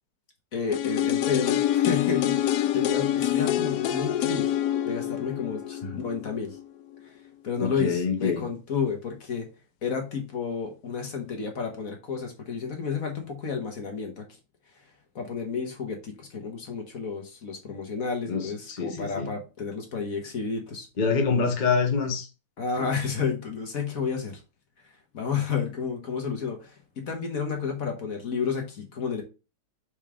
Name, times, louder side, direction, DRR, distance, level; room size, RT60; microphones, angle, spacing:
voice 1, 0.5-4.5 4.9-6.6 7.0-7.1 7.4-9.5 9.8-14.2 15.1-20.9 22.6-24.4 25.1-29.2, left 6 dB, 50° left, 1.5 m, -31 dB
sound 1, 0.7-6.6 6.9-7.0, left 11 dB, 70° left, 0.9 m, -26 dB
voice 2, 7.6-8.4 18.3-19.3 21.0-22.3 22.8-22.9, left 5 dB, 30° left, 0.9 m, -26 dB
5.3 x 4.8 x 3.7 m
omnidirectional pair, 2.0 m